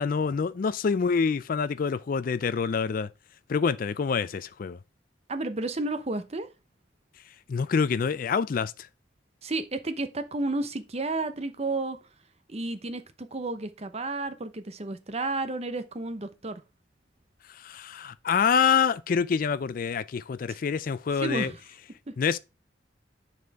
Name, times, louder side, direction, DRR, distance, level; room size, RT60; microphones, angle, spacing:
voice 1, 0.0-3.1 3.5-4.8 7.5-8.7 17.5-21.5 22.2-22.4, left 6 dB, 50° left, 0.4 m, -26 dB
voice 2, 5.3-6.5 9.4-12.0 12.5-16.6 20.5-20.6 21.2-21.6, right 2 dB, 35° right, 0.8 m, -32 dB
9.4 x 4.3 x 3.5 m
head